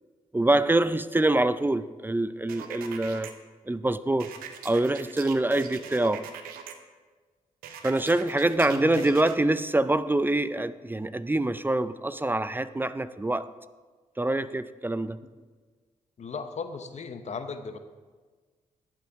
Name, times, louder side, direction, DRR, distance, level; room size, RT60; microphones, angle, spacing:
voice 1, 0.3-3.3 3.7-4.3 4.6-6.3 7.8-13.5 14.2-15.2, right 2 dB, 15° right, 0.4 m, -25 dB
sound 1, 2.5-3.3 4.2-6.7 7.6-9.4, right 8 dB, 90° right, 0.7 m, -42 dB
voice 2, 8.4-9.1 16.2-17.8, left 5 dB, 50° left, 0.9 m, -37 dB
11.5 x 8.4 x 3.5 m
supercardioid pair, 50°, 15 cm